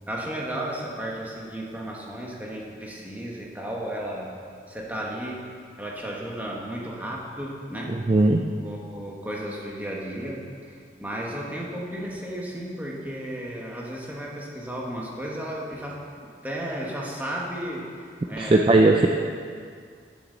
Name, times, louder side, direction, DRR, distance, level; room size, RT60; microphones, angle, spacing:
voice 1, 0.1-4.3 4.7-5.4 5.8-8.0 8.6-18.8, right 1 dB, 10° right, -3 dB, 1.5 m, -34 dB
voice 2, 7.9-8.4 18.4-19.1, right 2 dB, 30° right, 3 dB, 0.4 m, -18 dB
16.0 x 7.2 x 4.0 m, 2.2 s
head